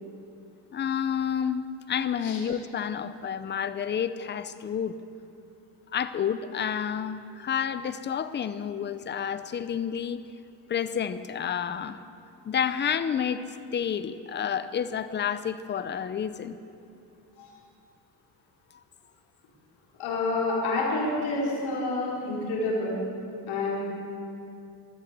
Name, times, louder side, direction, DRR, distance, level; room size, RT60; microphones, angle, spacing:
voice 1, 0.7-5.0 5.9-10.2 10.7-12.0 12.4-13.4 13.7-16.6, left 8 dB, 20° left, 13 dB, 0.6 m, -30 dB
voice 2, 20.0-23.0 23.5-23.8, left 2 dB, 65° left, -4 dB, 4.4 m, -28 dB
16.0 x 11.5 x 7.5 m, 2.6 s
cardioid pair, 120°, 50 cm